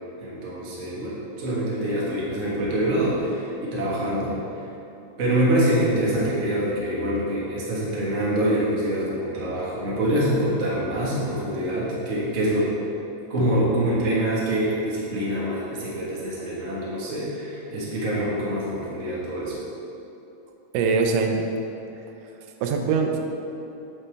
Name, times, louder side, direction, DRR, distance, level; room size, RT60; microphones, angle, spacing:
voice 1, 0.2-4.7 5.2-12.7 13.3-19.6, right 1 dB, 40° right, -7 dB, 1.1 m, -25 dB
voice 2, 20.7-21.4 22.6-23.2, right 5 dB, 90° right, 3 dB, 2.3 m, -22 dB
9.0 x 5.7 x 3.4 m, 2.9 s
omnidirectional pair, 3.8 m